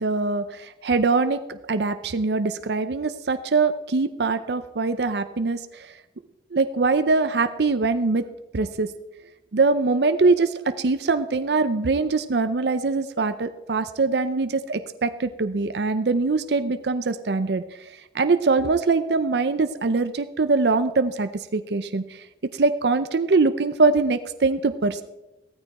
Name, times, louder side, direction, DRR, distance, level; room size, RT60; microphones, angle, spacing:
voice 1, 0.0-6.0 6.5-8.3 8.5-8.9 9.5-22.3 22.5-25.0, right 3 dB, 65° right, 11 dB, 0.6 m, -23 dB
15.5 x 13.5 x 4.2 m, 0.98 s
head